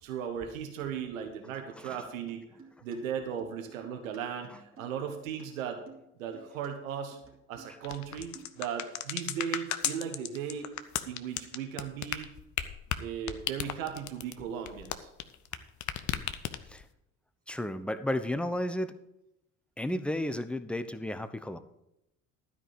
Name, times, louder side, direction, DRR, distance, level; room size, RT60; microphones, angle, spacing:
voice 1, 0.0-2.4 2.8-5.8 6.2-7.2 7.5-10.7 11.1-12.3 13.0-15.1, right 8 dB, 75° right, 5 dB, 1.2 m, -37 dB
sound 1, 2.2-3.0 3.2-5.4 5.7-6.7 7.1-7.9 8.2-8.6, right 5 dB, 30° right, 2.7 m, -54 dB
sound 2, 7.8-15.6 15.8-16.8, left 11 dB, 45° left, 0.9 m, -34 dB
voice 2, 17.5-18.9 19.8-21.6, left 1 dB, 5° left, 11 dB, 0.8 m, -33 dB
12.5 x 5.0 x 7.5 m, 0.85 s
figure-of-eight pair, 60°, 41 cm